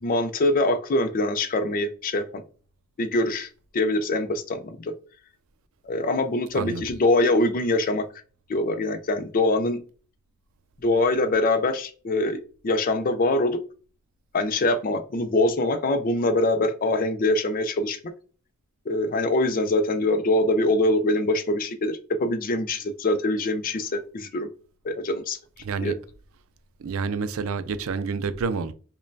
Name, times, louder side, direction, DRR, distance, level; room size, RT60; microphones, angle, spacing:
voice 1, 0.0-2.4 3.0-4.9 5.8-8.0 8.5-9.8 10.8-13.6 14.3-18.1 18.9-24.5 24.8-25.4 25.8-26.0, left 2 dB, 40° left, 0.4 m, -24 dB
voice 2, 6.5-6.8 25.6-26.0 26.8-28.7, right 5 dB, 70° right, 0.4 m, -28 dB
5.0 x 2.2 x 2.6 m
head